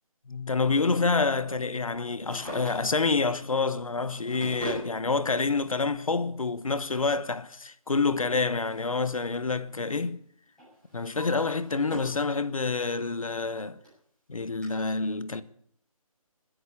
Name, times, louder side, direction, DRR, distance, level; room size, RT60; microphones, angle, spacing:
voice 1, 0.3-10.2 10.9-13.8 14.3-15.4, left 4 dB, 70° left, 1.2 m, -27 dB
Drawer open or close, 2.1-3.2 3.9-4.9 6.0-6.1 7.8-9.4 9.7-10.1 10.6-12.2 12.7-12.8 13.5-13.6 13.8-13.9 14.6-14.7, equal, 5° left, 7.7 m, -42 dB
16.0 x 10.0 x 8.3 m
figure-of-eight pair, 150°, 18 cm